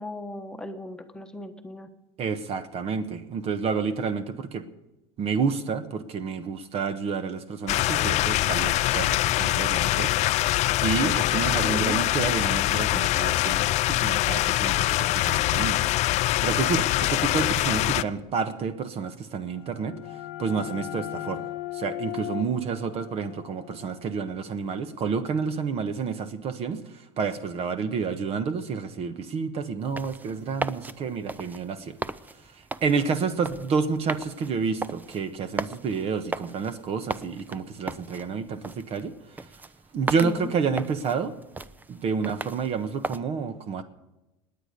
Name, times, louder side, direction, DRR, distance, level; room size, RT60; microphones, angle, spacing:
voice 1, 0.0-1.9 11.6-12.0 40.2-40.5, left 2 dB, 5° left, 5 dB, 1.2 m, -36 dB
voice 2, 2.2-4.6 5.2-10.1 10.8-15.8 16.4-32.0 32.5-39.1 39.4-39.5 39.9-41.3 41.9-43.8, right 5 dB, 45° right, 10 dB, 1.2 m, -29 dB
sound 1, 7.7-18.0, left 16 dB, 50° left, 0.5 m, -24 dB
sound 2, 19.4-24.9, left 16 dB, 80° left, 1.0 m, -38 dB
sound 3, 29.8-43.2, right 3 dB, 10° right, 0.5 m, -37 dB
20.0 x 8.7 x 6.7 m, 0.97 s
supercardioid pair, 115°, 15 cm